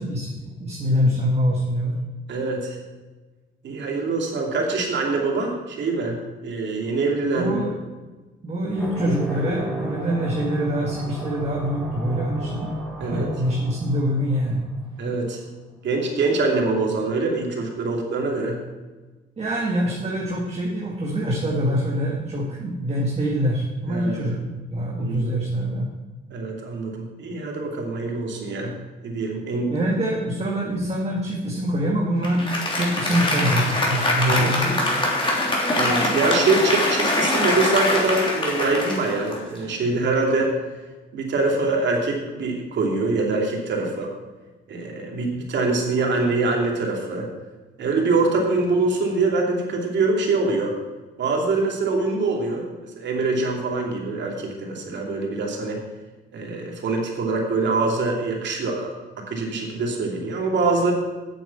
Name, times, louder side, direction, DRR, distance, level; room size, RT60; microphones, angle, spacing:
voice 1, 0.0-2.0 7.3-7.7 8.4-12.7 13.0-14.6 19.4-24.4 24.7-25.9 29.7-32.5 32.7-34.7, equal, 30° right, -3 dB, 2.1 m, -24 dB
voice 2, 2.3-2.8 3.6-7.6 13.0-13.3 15.0-15.4 15.8-18.6 23.9-24.4 25.0-25.2 26.3-28.8 29.0-29.7 34.3-34.5 35.7-40.5 41.1-44.1 44.7-47.3 47.8-50.7 51.2-55.8 56.3-60.9, right 3 dB, 65° right, 0 dB, 2.7 m, -24 dB
sound 1, 8.7-14.9, equal, ahead, 4.0 m, -34 dB
Applause, 32.2-39.8, left 1 dB, 25° left, 3.2 m, -23 dB
8.8 x 7.7 x 7.1 m, 1.2 s
cardioid pair, 90°, 20 cm